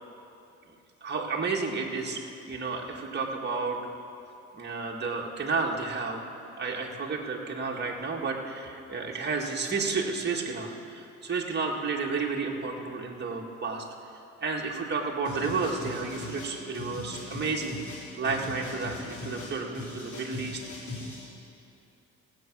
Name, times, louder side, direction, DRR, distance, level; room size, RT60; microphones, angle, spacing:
voice 1, 1.0-2.2 2.5-3.8 4.5-6.2 6.6-13.9 14.4-17.8 18.2-20.6, right 4 dB, 35° right, -1 dB, 1.9 m, -31 dB
sound 1, 15.2-21.2, left 2 dB, 75° left, 4.1 m, -40 dB
18.0 x 8.2 x 6.1 m, 2.7 s
cardioid pair, 90°, 30 cm